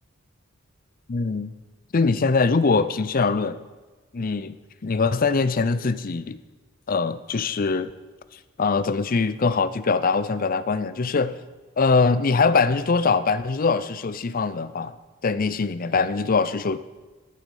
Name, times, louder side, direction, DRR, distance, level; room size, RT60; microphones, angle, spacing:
voice 1, 1.1-1.5 1.9-3.6 4.1-4.5 4.8-6.4 6.9-7.9 8.6-11.4 11.8-14.9 15.2-16.8, left 4 dB, 40° left, 14 dB, 0.5 m, -22 dB
9.4 x 9.2 x 7.1 m, 1.3 s
head